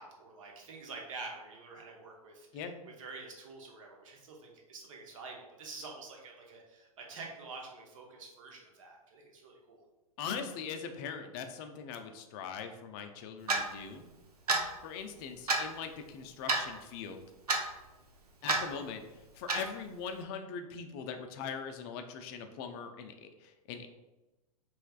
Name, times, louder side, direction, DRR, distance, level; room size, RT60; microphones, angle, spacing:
voice 1, 0.0-9.8, right 3 dB, 60° right, 0 dB, 0.9 m, -47 dB
voice 2, 10.2-14.1 14.8-17.2 18.4-19.0 19.3-23.9, left 6 dB, 40° left, 6 dB, 0.4 m, -41 dB
Clock, 13.5-13.6 14.5-14.7 15.5-15.7 16.5-16.7 17.5-17.6 18.5-18.6 19.5-19.7, right 3 dB, 85° right, 0.6 m, -28 dB
3.2 x 3.0 x 2.3 m, 1.1 s
figure-of-eight pair, 100°, 19 cm